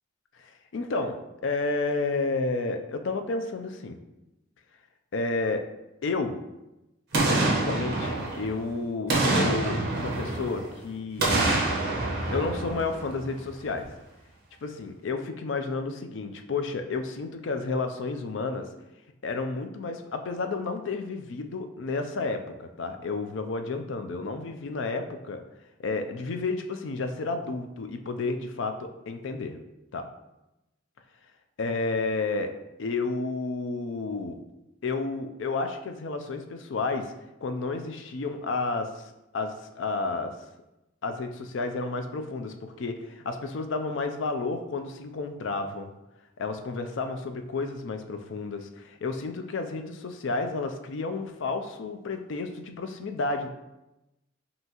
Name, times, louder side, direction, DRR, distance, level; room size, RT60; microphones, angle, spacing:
voice 1, 0.4-4.0 5.1-5.7 6.0-6.3 7.4-11.7 12.3-13.9 14.6-18.7 19.2-25.4 25.8-29.6 29.9-30.1 31.6-32.5 32.8-34.4 34.8-37.1 37.4-39.1 39.3-40.3 41.0-45.9 46.4-53.5, left 3 dB, 65° left, 6 dB, 0.4 m, -31 dB
Boom, 7.1-8.6 9.1-10.7 11.2-13.4 13.8-13.9, right 2 dB, 55° right, 1.0 m, -26 dB
5.4 x 2.8 x 2.9 m, 0.95 s
head